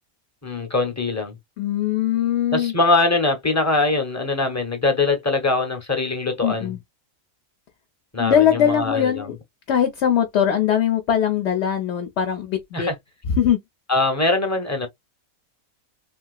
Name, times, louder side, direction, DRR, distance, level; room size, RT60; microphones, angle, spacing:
voice 1, 0.4-1.4 2.5-6.7 8.1-9.3 12.7-12.9 13.9-14.9, left 3 dB, 15° left, 0.7 m, -22 dB
voice 2, 1.6-2.7 6.4-6.8 8.2-9.4 9.7-12.9 13.3-13.6, left 9 dB, 60° left, 0.9 m, -21 dB
3.4 x 2.8 x 2.3 m
omnidirectional pair, 1.6 m